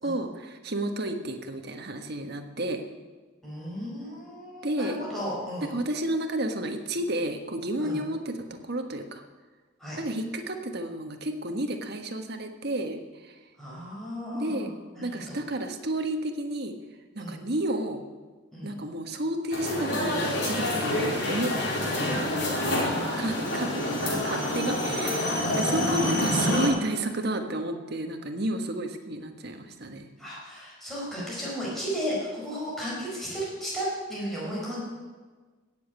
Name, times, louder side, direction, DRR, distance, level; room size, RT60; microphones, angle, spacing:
voice 1, 0.0-2.8 4.6-5.0 5.7-9.2 10.0-13.4 14.3-14.7 15.0-16.7 17.1-18.1 18.6-21.6 21.8-30.1, right 1 dB, 55° right, 5 dB, 1.4 m, -31 dB
voice 2, 3.4-5.7 7.8-8.0 9.8-10.0 13.6-15.4 17.2-17.4 18.5-18.7 23.8-25.0 25.4-26.1 30.2-34.8, equal, ahead, -7 dB, 5.0 m, -35 dB
sound 1, 19.5-26.7, left 1 dB, 55° left, 3.8 m, -27 dB
17.0 x 7.3 x 8.3 m, 1.4 s
head